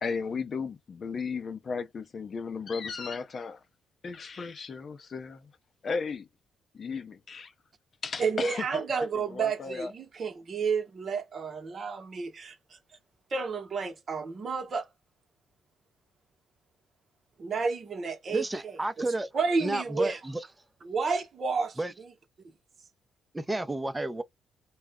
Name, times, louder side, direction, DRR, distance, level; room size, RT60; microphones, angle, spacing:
voice 1, 0.0-3.6 4.0-5.5 5.8-6.3 6.7-7.5 8.0-8.6 9.1-9.9, left 5 dB, 45° left, 0.5 m, -35 dB
voice 2, 8.2-12.8 13.3-14.9 17.4-18.4 19.3-20.2 20.9-21.8, right 5 dB, 45° right, 0.8 m, -30 dB
voice 3, 18.3-19.3 19.6-20.4 21.8-21.9 23.3-24.2, right 2 dB, 15° right, 0.6 m, -31 dB
2.3 x 2.0 x 3.4 m
cardioid pair, 90°, 0 cm